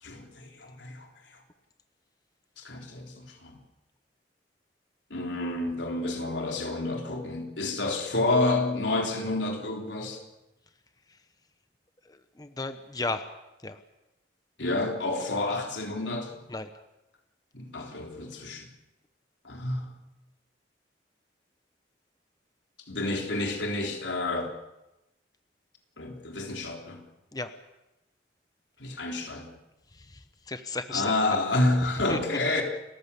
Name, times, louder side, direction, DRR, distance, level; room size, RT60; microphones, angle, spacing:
voice 1, 0.0-1.1 2.6-3.5 5.1-10.2 14.6-16.4 17.5-18.7 19.4-19.9 22.9-24.5 26.0-27.0 28.8-29.5 30.9-32.6, left 2 dB, 85° left, 3 dB, 3.7 m, -29 dB
voice 2, 12.4-13.3 13.6-13.8 16.5-16.7 27.3-27.5 30.0-30.2 30.5-31.1 32.1-32.2, left 3 dB, 20° left, 10 dB, 0.9 m, -33 dB
29.5 x 14.5 x 8.4 m, 0.95 s
head